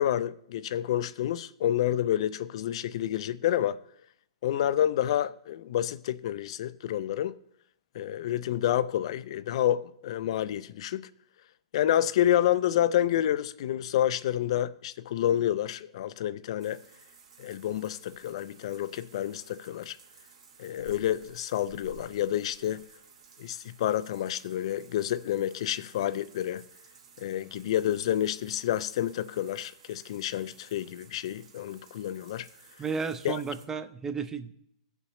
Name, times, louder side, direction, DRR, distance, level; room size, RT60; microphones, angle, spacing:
voice 1, 0.0-3.8 4.4-7.3 7.9-11.1 11.7-16.8 17.4-20.0 20.6-22.9 23.4-26.6 27.2-32.5 33.2-33.4, left 11 dB, 55° left, 0.3 m, -29 dB
sound 1, 16.6-33.7, right 6 dB, 65° right, 2.3 m, -55 dB
voice 2, 32.8-34.5, right 5 dB, 10° right, 0.4 m, -33 dB
17.0 x 5.6 x 3.0 m
hypercardioid pair, 150°, 4 cm